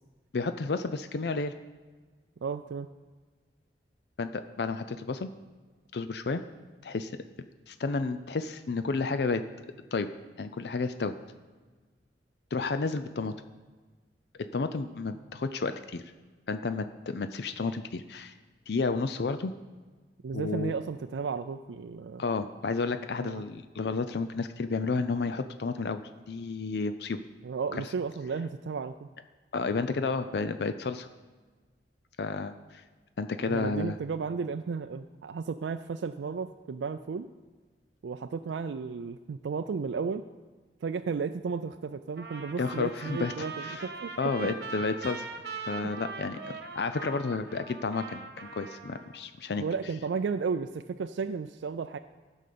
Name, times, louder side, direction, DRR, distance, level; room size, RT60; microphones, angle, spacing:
voice 1, 0.3-1.5 4.2-5.3 5.9-6.4 6.8-7.1 7.7-9.4 9.9-10.1 10.4-11.1 12.5-13.3 14.5-16.0 16.5-18.3 18.7-19.5 20.3-20.7 22.2-26.0 26.3-27.2 27.7-27.8 29.5-31.1 32.2-32.8 33.2-34.0 42.6-43.8 44.2-45.3 45.7-49.6, left 4 dB, 65° left, 10 dB, 0.5 m, -31 dB
voice 2, 2.4-2.9 20.2-22.2 23.2-23.4 27.4-29.1 33.5-37.3 38.0-40.3 40.8-44.5 49.6-52.0, right 5 dB, 90° right, 9 dB, 0.4 m, -33 dB
Trumpet, 42.2-49.2, right 4 dB, 60° right, 1.2 m, -41 dB
14.5 x 5.5 x 6.7 m, 1.4 s
head